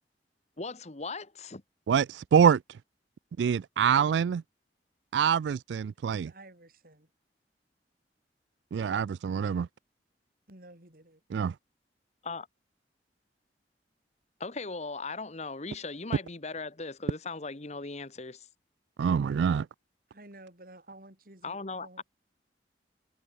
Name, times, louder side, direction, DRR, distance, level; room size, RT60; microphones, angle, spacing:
voice 1, 0.6-1.6 12.2-12.5 14.4-18.5 21.4-22.0, left 3 dB, 40° left, 1.3 m, -38 dB
voice 2, 1.9-2.6 3.4-4.4 5.1-6.3 8.7-9.7 11.3-11.5 19.0-19.6, right 7 dB, 80° right, 0.3 m, -25 dB
voice 3, 6.1-7.1 10.5-11.2 20.1-22.0, right 2 dB, 55° right, 5.5 m, -52 dB
head